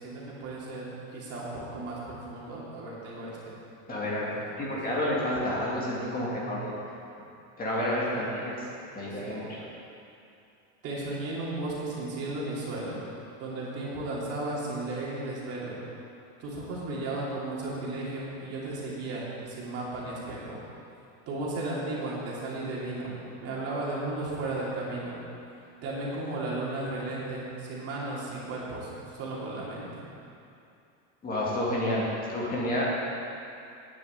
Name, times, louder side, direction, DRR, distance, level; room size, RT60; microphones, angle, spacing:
voice 1, 0.0-3.5 3.9-4.1 4.3-4.7 6.2-6.6 8.1-8.4 8.9-9.4 10.8-13.0 13.4-15.8 16.4-20.6 21.3-25.2 25.8-30.0, right 2 dB, 35° right, -6 dB, 3.1 m, -35 dB
voice 2, 3.9-6.7 7.6-8.5 8.9-9.7 31.2-32.8, left 1 dB, 20° left, -6 dB, 2.3 m, -30 dB
9.5 x 7.6 x 8.4 m, 2.6 s
supercardioid pair, 150°, 40 cm